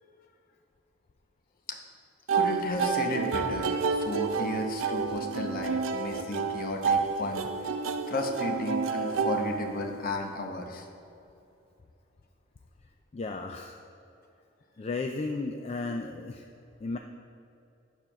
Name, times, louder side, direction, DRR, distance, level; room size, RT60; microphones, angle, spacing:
voice 1, 2.3-7.5 8.1-10.9, left 2 dB, 50° left, 3 dB, 0.9 m, -34 dB
sound 1, 2.3-10.2, right 5 dB, 85° right, 0.5 m, -29 dB
voice 2, 13.1-13.8 14.8-16.4 16.8-17.0, left 3 dB, 30° left, 4 dB, 0.3 m, -34 dB
8.9 x 4.4 x 6.0 m, 2.7 s
head